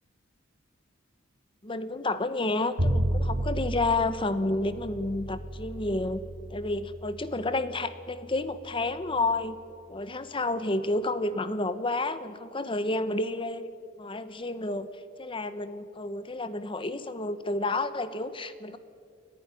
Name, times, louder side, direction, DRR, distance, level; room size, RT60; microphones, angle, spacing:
voice 1, 1.6-6.2 6.5-9.6 9.9-13.6 14.0-14.9 15.2-18.8, left 2 dB, 25° left, 12 dB, 1.0 m, -30 dB
Bowed string instrument, 2.8-8.9, right 1 dB, 80° right, 2.5 m, -32 dB
30.0 x 10.5 x 10.0 m, 2.3 s
head